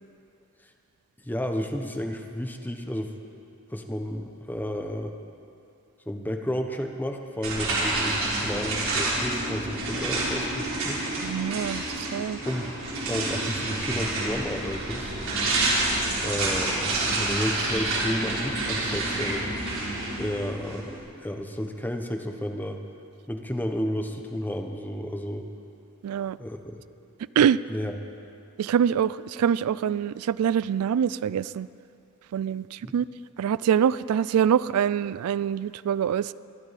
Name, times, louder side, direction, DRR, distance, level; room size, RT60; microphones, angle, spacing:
voice 1, 1.2-3.1 3.7-5.1 6.1-11.1 12.4-12.7 13.1-15.1 16.2-19.5 20.2-22.8 23.3-25.5 26.4-26.7 27.7-28.0 32.8-32.9, equal, 10° left, 5 dB, 0.9 m, -32 dB
sound 1, 7.4-21.0, right 2 dB, 65° right, 4.0 m, -28 dB
voice 2, 11.2-12.4 26.0-26.4 27.4-27.6 28.6-31.7 32.3-33.1 33.4-36.3, right 8 dB, 85° right, 18 dB, 0.3 m, -24 dB
24.0 x 12.5 x 4.1 m, 2.6 s
head